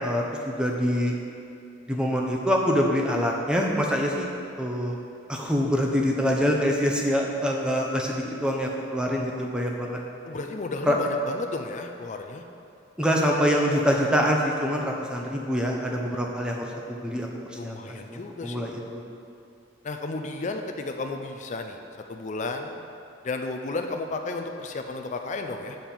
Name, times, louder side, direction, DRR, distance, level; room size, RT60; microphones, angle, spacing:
voice 1, 0.0-1.2 1.9-4.3 4.6-5.0 5.3-10.0 10.9-11.0 13.0-17.3 17.6-18.8, equal, 5° right, -1 dB, 0.8 m, -25 dB
voice 2, 10.3-12.4 17.6-18.7 19.8-22.8 23.2-25.8, left 3 dB, 40° left, 4 dB, 0.4 m, -33 dB
7.6 x 4.4 x 6.9 m, 2.6 s
head